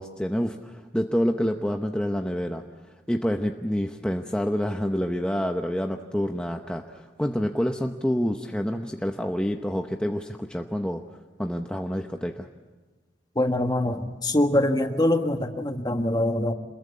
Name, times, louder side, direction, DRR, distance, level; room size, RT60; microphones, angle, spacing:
voice 1, 0.0-12.5, equal, 5° left, 4 dB, 0.8 m, -28 dB
voice 2, 13.3-16.5, left 1 dB, 20° left, 6 dB, 1.6 m, -24 dB
27.0 x 21.5 x 8.4 m, 1.3 s
head